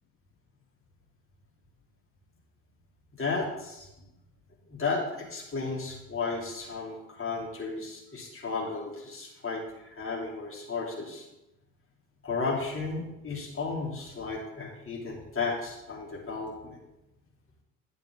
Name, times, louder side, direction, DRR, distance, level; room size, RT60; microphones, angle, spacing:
voice 1, 3.2-3.9 4.7-11.3 12.2-16.8, left 4 dB, 25° left, -3 dB, 3.4 m, -34 dB
10.5 x 8.3 x 3.8 m, 0.95 s
figure-of-eight pair, 60°, 47 cm